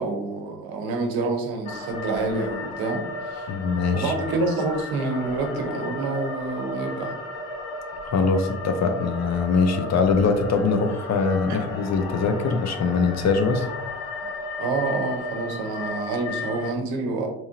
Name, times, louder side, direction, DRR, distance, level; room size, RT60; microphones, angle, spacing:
voice 1, 0.0-3.5 3.9-7.1 11.5-11.6 14.6-17.3, right 3 dB, 60° right, 3 dB, 0.9 m, -27 dB
sound 1, 1.6-16.7, left 2 dB, 80° left, 0.7 m, -34 dB
voice 2, 3.5-4.1 8.0-13.7, left 4 dB, 40° left, 7 dB, 0.5 m, -22 dB
3.5 x 3.0 x 2.8 m, 0.87 s
hypercardioid pair, 50°, 42 cm